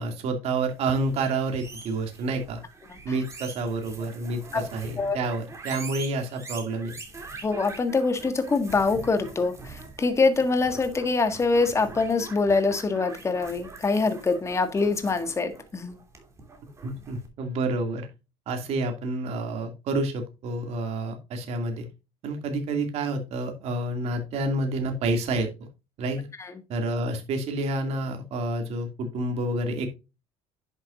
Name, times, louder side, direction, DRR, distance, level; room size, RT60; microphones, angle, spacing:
voice 1, 0.0-2.6 3.0-6.9 16.8-18.1 18.5-21.9 22.2-25.5 26.0-26.3 26.7-29.9, right 2 dB, 60° right, 2.4 m, -29 dB
sound 1, 0.8-17.3, right 3 dB, 25° right, 2.9 m, -44 dB
voice 2, 7.4-16.0 26.4-26.5, left 3 dB, 25° left, 1.8 m, -24 dB
10.5 x 7.3 x 2.5 m
cardioid pair, 120°, 12 cm